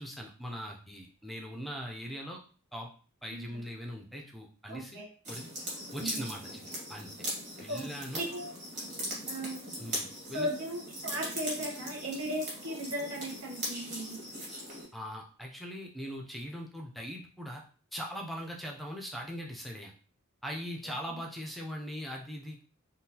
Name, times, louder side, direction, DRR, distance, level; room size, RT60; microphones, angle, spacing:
voice 1, 0.0-2.4 2.7-2.9 3.2-5.0 5.3-5.5 5.9-7.1 7.6-8.3 9.8-10.5 14.9-17.6 17.9-19.9 20.4-22.6, equal, ahead, 1 dB, 0.3 m, -40 dB
voice 2, 3.3-3.6 4.7-5.1 6.0-6.2 7.7-7.9 8.2-8.5 9.3-9.6 10.3-14.2 20.8-20.9, equal, 75° right, 0 dB, 0.9 m, -36 dB
sound 1, 5.2-14.9, equal, 35° right, 1.4 m, -40 dB
3.6 x 2.3 x 2.7 m, 0.41 s
head